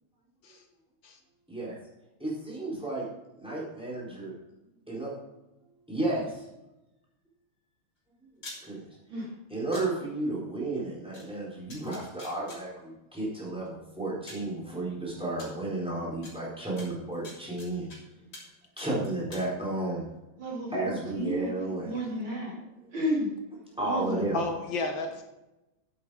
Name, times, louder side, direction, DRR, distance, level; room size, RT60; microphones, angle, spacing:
voice 1, 2.2-3.0 3.4-4.3 4.9-5.1 5.9-6.5 8.6-8.8 9.5-17.9 18.8-20.1 20.7-21.9 23.8-24.4, right 2 dB, ahead, -6 dB, 4.3 m, -32 dB
sound 1, 8.3-8.6 9.7-9.8 11.1-11.2 11.7-12.6 13.7-13.8 14.3-14.5 15.4-15.5 16.2-16.3 16.8-18.0 18.3-18.5 18.8-19.4, left 2 dB, 50° left, 3.8 m, -45 dB
voice 2, 20.4-22.6 22.9-23.3 23.8-24.3, equal, 75° right, -3 dB, 3.8 m, -32 dB
voice 3, 24.3-25.2, left 3 dB, 70° left, 5 dB, 1.9 m, -32 dB
9.7 x 8.5 x 4.9 m, 0.97 s
omnidirectional pair, 2.2 m